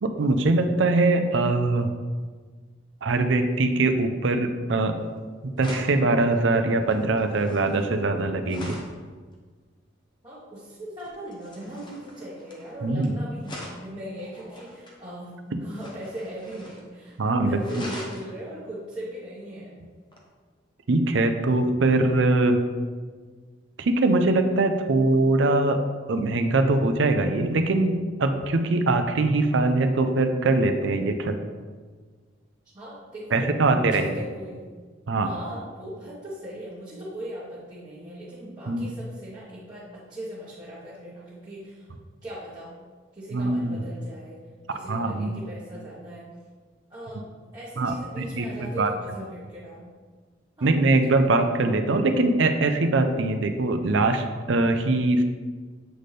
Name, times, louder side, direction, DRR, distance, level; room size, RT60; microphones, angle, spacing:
voice 1, 0.0-1.9 3.0-5.0 5.6-8.8 12.8-13.1 15.5-15.6 17.2-17.9 20.9-22.6 23.8-25.8 26.1-31.4 33.3-34.2 35.1-35.3 38.7-38.9 43.3-43.8 44.9-45.4 47.8-48.9 50.6-55.2, right 2 dB, 65° right, 7 dB, 0.5 m, -22 dB
sound 1, 5.0-5.2 5.6-9.0 11.0-13.1 13.4-15.0 15.7-16.9 17.1-17.2 17.6-18.3 20.1-20.2, left 1 dB, 25° left, 0.8 m, -42 dB
voice 2, 10.2-19.7 32.7-34.6 35.2-41.9 42.2-42.7 43.1-44.4 44.7-46.3 46.9-49.9 50.6-51.5, right 1 dB, 20° right, -10 dB, 1.2 m, -39 dB
7.8 x 4.2 x 3.3 m, 1.5 s
head